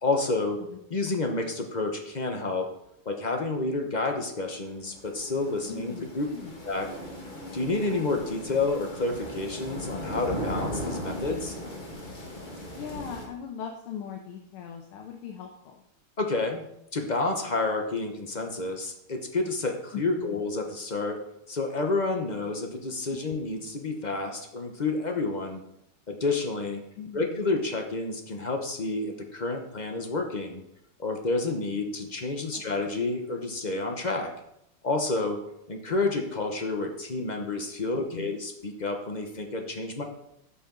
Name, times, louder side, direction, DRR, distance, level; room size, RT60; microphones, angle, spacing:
voice 1, 0.0-0.6 0.9-2.7 3.0-6.3 6.6-6.9 7.5-11.6 16.2-16.6 16.9-21.2 21.5-25.6 26.1-26.8 27.1-30.6 31.0-34.3 34.8-35.4 35.7-40.0, left 3 dB, 40° left, 3 dB, 0.6 m, -29 dB
sound 1, 4.3-13.3, left 1 dB, 25° left, 1.6 m, -37 dB
voice 2, 5.6-6.6 12.8-15.8 19.9-20.4 23.1-23.4 27.0-27.4 32.5-32.6 38.1-38.4, left 7 dB, 80° left, 3 dB, 1.8 m, -40 dB
12.5 x 7.1 x 3.9 m, 0.79 s
omnidirectional pair, 2.4 m